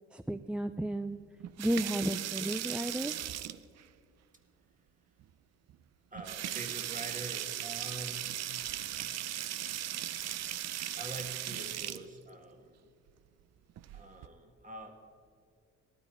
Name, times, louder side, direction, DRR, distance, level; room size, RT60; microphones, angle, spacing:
voice 1, 0.1-1.2 1.6-3.1, right 1 dB, 5° right, 9 dB, 0.3 m, -33 dB
sound 1, 1.4-3.8 5.2-5.3 5.7-5.8 6.2-12.0 13.7-14.3, right 12 dB, 60° right, 0.5 m, -38 dB
voice 2, 6.1-8.6 8.9-9.0 10.9-12.9 13.9-14.9, right 1 dB, 25° right, 5 dB, 1.6 m, -45 dB
17.5 x 12.0 x 4.9 m, 2.1 s
cardioid pair, 90°, 30 cm